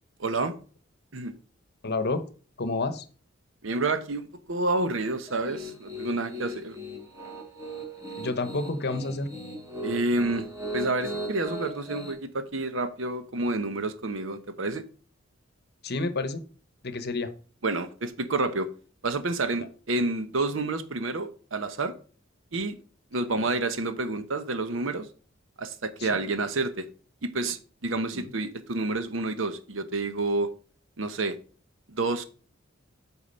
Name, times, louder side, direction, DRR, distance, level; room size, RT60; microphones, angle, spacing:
voice 1, 0.2-0.5 1.1-1.3 3.6-6.8 9.8-10.5 10.7-14.8 17.6-18.7 19.0-21.9 22.5-22.8 23.1-25.1 25.6-26.9 27.2-30.5 31.0-31.4 31.9-32.2, right 2 dB, 70° right, 0.9 m, -29 dB
voice 2, 1.8-2.2 2.6-3.0 8.2-9.3 15.8-16.4 16.8-17.3 23.3-23.4 26.1-26.2 28.1-28.3, left 3 dB, 55° left, 0.9 m, -29 dB
Piano, 5.3-12.1, equal, 15° right, 1.9 m, -38 dB
8.5 x 4.7 x 5.5 m
head